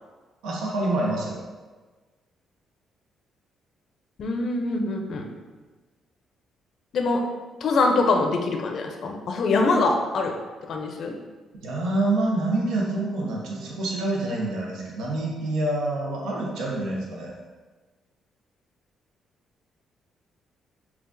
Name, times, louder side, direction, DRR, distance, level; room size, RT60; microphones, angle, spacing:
voice 1, 0.4-1.4 11.6-17.3, right 2 dB, 90° right, -3 dB, 0.7 m, -27 dB
voice 2, 4.2-5.3 6.9-7.2 7.6-10.4 10.7-11.2, left 3 dB, 60° left, 3 dB, 0.5 m, -24 dB
5.7 x 2.4 x 2.6 m, 1.3 s
cardioid pair, 90°, 0 cm